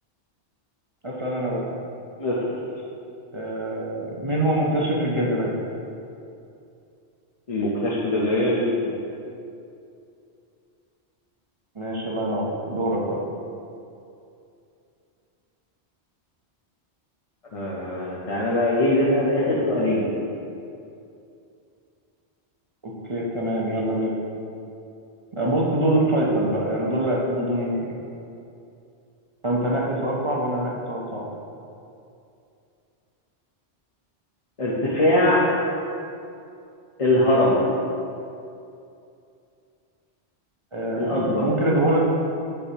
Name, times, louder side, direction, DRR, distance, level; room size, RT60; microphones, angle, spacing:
voice 1, 1.0-1.7 3.3-5.5 11.7-13.2 22.8-24.1 25.3-27.9 29.4-31.3 40.7-42.0, right 1 dB, 30° right, -4 dB, 0.7 m, -24 dB
voice 2, 2.2-2.5 7.5-9.0 17.5-20.1 34.6-35.5 37.0-37.7 41.0-41.5, left 1 dB, 35° left, -7 dB, 0.7 m, -22 dB
8.0 x 5.4 x 2.9 m, 2.6 s
omnidirectional pair, 1.1 m